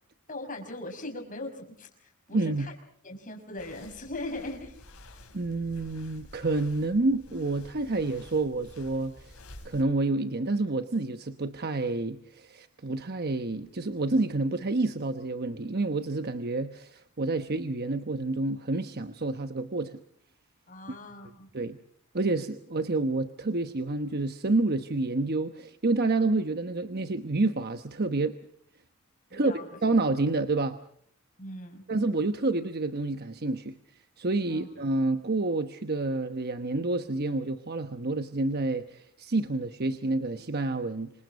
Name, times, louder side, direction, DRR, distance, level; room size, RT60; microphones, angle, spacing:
voice 1, 0.3-2.7 3.0-4.8 20.7-21.5 29.3-29.7 31.4-31.8 34.5-34.7, left 2 dB, 40° left, 4 dB, 5.9 m, -40 dB
voice 2, 2.3-2.7 5.3-9.4 9.6-20.0 21.5-21.8 22.1-28.3 29.3-29.5 29.8-30.8 31.9-33.7 34.2-41.1, right 2 dB, 45° right, 8 dB, 1.0 m, -28 dB
sound 1, 3.6-9.8, left 1 dB, 85° left, 5.3 m, -50 dB
27.0 x 25.5 x 5.3 m, 0.63 s
head